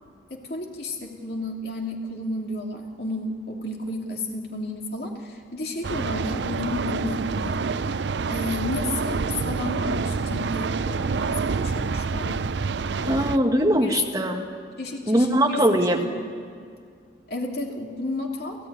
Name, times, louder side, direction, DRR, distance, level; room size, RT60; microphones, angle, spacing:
voice 1, 0.3-7.6 8.3-12.4 13.0-13.4 13.8-14.0 14.8-15.6 15.9-16.3 17.3-18.6, left 2 dB, 55° left, 1 dB, 2.8 m, -32 dB
sound 1, 5.8-13.4, right 4 dB, 70° right, 0.5 m, -27 dB
voice 2, 13.1-14.4 15.1-16.0, equal, 20° right, 3 dB, 1.7 m, -21 dB
29.5 x 14.5 x 9.8 m, 2.1 s
head